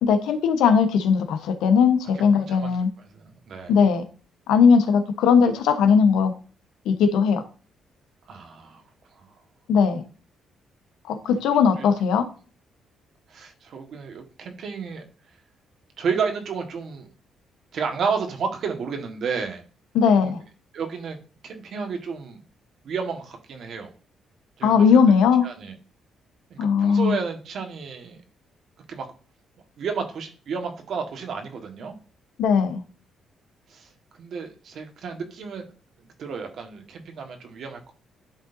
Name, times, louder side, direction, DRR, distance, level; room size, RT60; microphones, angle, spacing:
voice 1, 0.0-2.9 3.7-4.0 4.5-6.3 6.8-7.4 9.7-10.0 11.1-12.3 19.9-20.4 24.6-25.5 26.6-27.1 32.4-32.8, left 6 dB, 85° left, 8 dB, 1.0 m, -19 dB
voice 2, 2.2-2.7 3.0-3.7 8.3-8.8 9.1-9.3 11.2-11.4 11.8-11.9 13.3-15.0 16.0-17.1 17.7-19.6 20.2-20.3 20.7-21.2 21.4-22.4 22.8-23.9 24.6-24.8 25.4-25.7 26.5-28.2 28.9-29.1 29.8-31.9 33.7-33.9 34.2-35.7 36.2-37.9, right 5 dB, 65° right, 5 dB, 1.5 m, -31 dB
11.5 x 3.9 x 2.7 m, 0.38 s
cardioid pair, 90°, 0 cm